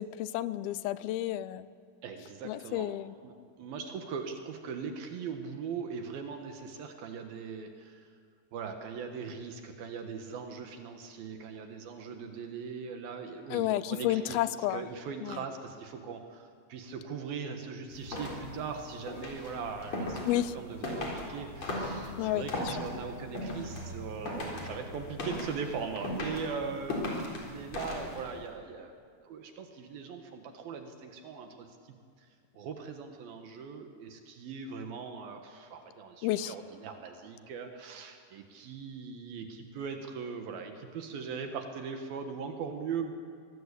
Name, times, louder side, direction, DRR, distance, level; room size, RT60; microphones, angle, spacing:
voice 1, 0.0-1.7 2.4-3.1 13.5-14.8 15.2-15.4 20.3-20.5 22.2-22.7 36.2-36.5, left 14 dB, 80° left, 15 dB, 2.5 m, -31 dB
voice 2, 2.0-3.0 3.2-8.1 8.5-14.4 14.7-28.9 29.2-31.7 32.5-43.1, right 5 dB, 70° right, 5 dB, 3.1 m, -40 dB
sound 1, 17.9-28.4, left 1 dB, 45° left, 4.8 m, -38 dB
24.0 x 19.0 x 8.3 m, 2.1 s
omnidirectional pair, 4.5 m